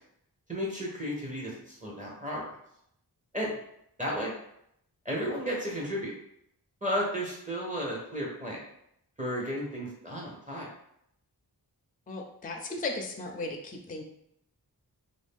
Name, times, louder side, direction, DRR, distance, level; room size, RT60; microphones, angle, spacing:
voice 1, 0.5-2.5 3.3-3.5 4.0-4.3 5.0-6.1 6.8-8.6 9.2-10.7, equal, 20° right, -3 dB, 0.7 m, -33 dB
voice 2, 12.1-14.0, left 3 dB, 25° left, 2 dB, 0.4 m, -36 dB
2.5 x 2.3 x 3.5 m, 0.74 s
wide cardioid pair, 100°, 38 cm